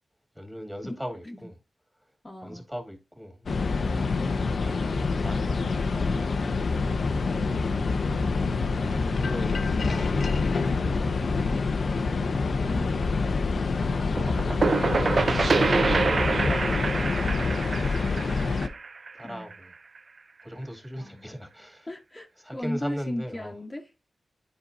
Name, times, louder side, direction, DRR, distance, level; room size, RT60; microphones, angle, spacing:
voice 1, 0.4-1.6 2.4-3.8 4.6-5.4 5.8-7.1 8.9-10.3 10.8-11.2 12.7-14.6 17.6-18.2 19.1-19.7 20.4-21.9 22.4-23.5, equal, 5° right, 2.2 m, -40 dB
voice 2, 2.2-2.6 7.2-7.6 19.2-19.5 21.0-21.4 21.9-22.3 22.5-23.8, left 1 dB, 25° left, 1.2 m, -36 dB
sound 1, 3.5-18.7, left 4 dB, 70° left, 0.7 m, -26 dB
sound 2, 14.2-19.7, right 4 dB, 60° right, 0.5 m, -26 dB
9.8 x 4.5 x 2.6 m
cardioid pair, 45°, 0 cm